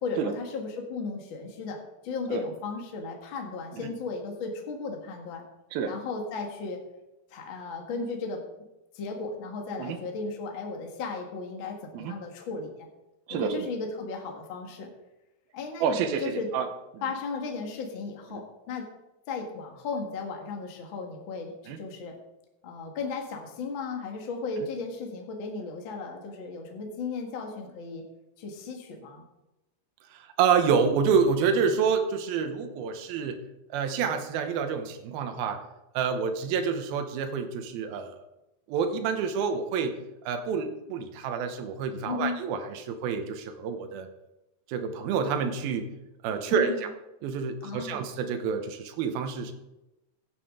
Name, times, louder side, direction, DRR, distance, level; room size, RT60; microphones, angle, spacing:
voice 1, 0.0-1.8 2.0-5.4 5.9-6.8 7.3-8.4 8.9-12.9 13.3-14.9 15.5-16.5 17.0-18.9 19.3-22.2 22.6-28.0 28.4-29.2 42.1-42.4 46.5-46.9 47.6-48.0, left 4 dB, 45° left, 2 dB, 1.8 m, -35 dB
voice 2, 13.3-13.7 15.8-16.7 18.3-18.4 21.7-21.8 24.6-24.7 30.1-33.4 33.7-35.6 35.9-38.2 38.7-40.0 40.3-44.1 44.7-45.9 46.2-46.9 47.2-49.5, right 6 dB, 85° right, 6 dB, 2.8 m, -28 dB
15.5 x 9.3 x 3.8 m, 0.95 s
omnidirectional pair, 4.3 m